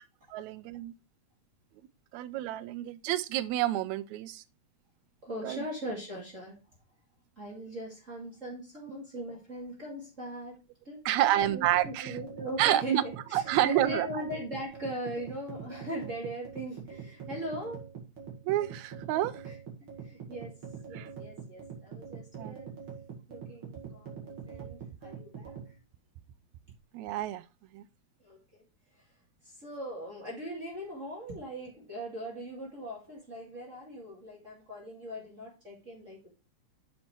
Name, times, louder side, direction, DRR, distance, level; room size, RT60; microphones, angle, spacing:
voice 1, 0.3-0.9 2.1-4.4 5.4-5.6 11.1-12.2 12.6-13.0 13.3-14.1 18.5-19.4 20.9-21.1 22.4-22.6 26.9-27.4 27.7-27.8, right 14 dB, 80° right, 1.8 m, -29 dB
voice 2, 5.2-6.6 7.4-10.6 10.9-17.8 19.4-19.6 20.0-20.5 20.9-22.8 23.3-25.7 28.2-28.6 29.4-36.3, equal, 30° right, 2.1 m, -40 dB
sound 1, 11.4-25.7, right 6 dB, 45° right, 2.6 m, -44 dB
7.4 x 5.7 x 4.4 m
omnidirectional pair, 3.4 m